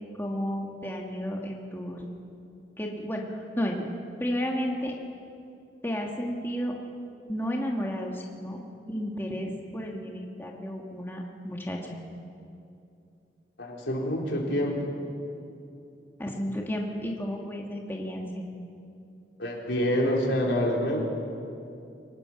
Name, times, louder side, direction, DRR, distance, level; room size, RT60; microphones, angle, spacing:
voice 1, 0.2-2.1 2.8-3.8 4.2-4.9 5.8-6.7 7.3-8.6 8.9-12.0 16.2-18.4, equal, 15° left, 0 dB, 1.7 m, -32 dB
voice 2, 13.6-15.0 19.4-21.0, equal, 90° left, -1 dB, 3.9 m, -27 dB
24.0 x 19.0 x 5.9 m, 2.6 s
head